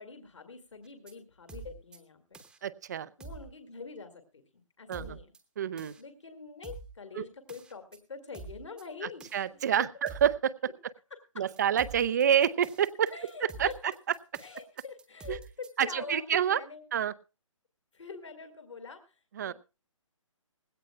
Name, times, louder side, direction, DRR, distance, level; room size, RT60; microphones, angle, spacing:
voice 1, 0.0-2.2 3.2-5.3 6.0-7.8 8.1-9.6 11.1-11.5 13.1-13.7 14.4-16.8 17.9-19.5, left 5 dB, 60° left, 8 dB, 2.1 m, -45 dB
sound 1, 0.8-1.1 1.5-2.0 2.3-2.6 3.2-3.5 4.9-5.4 5.8-6.0 6.6-6.9 7.5-8.0 8.3-8.8 9.2-9.4 10.1-10.4 11.6-15.7, right 4 dB, 5° right, 1.0 m, -46 dB
voice 2, 2.6-3.1 4.9-5.2 5.6-5.9 7.2-7.3 9.3-10.7 11.4-13.1 13.6-13.7 15.3-15.4 15.8-16.6 16.9-17.1 19.4-19.5, right 9 dB, 35° right, 18 dB, 0.6 m, -27 dB
19.0 x 16.5 x 2.2 m, 0.31 s
figure-of-eight pair, 140°, 17 cm